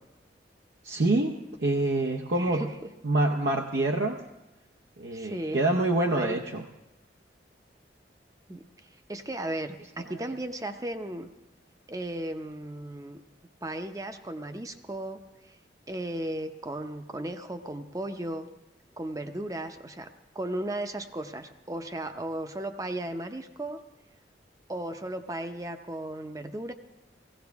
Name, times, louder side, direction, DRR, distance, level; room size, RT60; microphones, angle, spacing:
voice 1, 0.8-2.6 3.0-4.2 5.0-6.6, right 2 dB, 75° right, 0 dB, 0.8 m, -26 dB
voice 2, 2.3-2.7 5.1-5.7 6.1-6.4 8.5-8.6 9.1-11.3 11.9-13.2 13.6-15.2 15.9-18.5 19.0-20.1 20.3-23.8 24.7-26.7, right 1 dB, 20° right, 7 dB, 0.7 m, -35 dB
17.5 x 16.0 x 3.5 m, 0.98 s
head